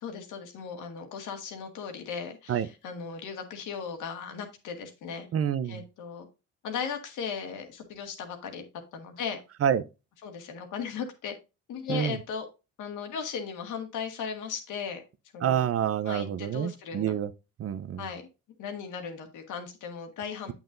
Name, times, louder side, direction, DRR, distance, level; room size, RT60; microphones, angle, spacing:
voice 1, 0.0-5.3 5.6-6.3 6.6-8.6 8.9-9.4 10.2-11.3 11.7-12.5 12.8-15.0 15.3-15.7 16.0-17.1 18.0-18.3 18.6-20.5, left 6 dB, 85° left, 1.8 m, -37 dB
voice 2, 5.3-5.8 9.6-9.8 11.9-12.2 15.4-17.3 17.6-18.0, right 9 dB, 50° right, 0.7 m, -27 dB
8.1 x 7.2 x 2.6 m
cardioid pair, 90°, 30 cm